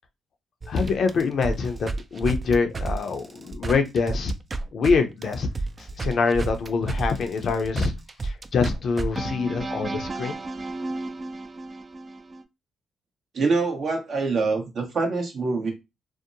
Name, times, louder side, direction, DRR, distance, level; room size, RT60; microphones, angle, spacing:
sound 1, 0.6-4.9 5.2-12.4, right 3 dB, 35° right, 0.3 m, -32 dB
voice 1, 0.7-4.3 4.7-5.5 6.0-7.9 8.2-10.4, left 4 dB, 60° left, 0.5 m, -25 dB
voice 2, 13.3-15.7, right 4 dB, 60° right, 0.9 m, -25 dB
2.7 x 2.0 x 2.6 m
cardioid pair, 70°, 0 cm